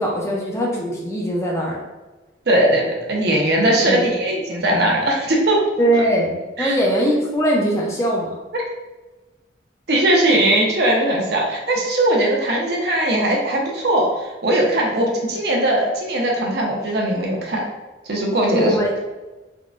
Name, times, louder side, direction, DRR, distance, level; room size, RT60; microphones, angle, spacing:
voice 1, 0.0-1.8 3.8-4.1 5.8-8.3 10.3-10.4 18.5-19.0, right 1 dB, 15° left, -2 dB, 0.4 m, -21 dB
voice 2, 2.5-5.6 6.6-6.7 8.5-8.6 9.9-17.6 18.1-18.8, right 1 dB, 60° right, -1 dB, 0.6 m, -19 dB
3.5 x 2.1 x 2.4 m, 1.1 s
head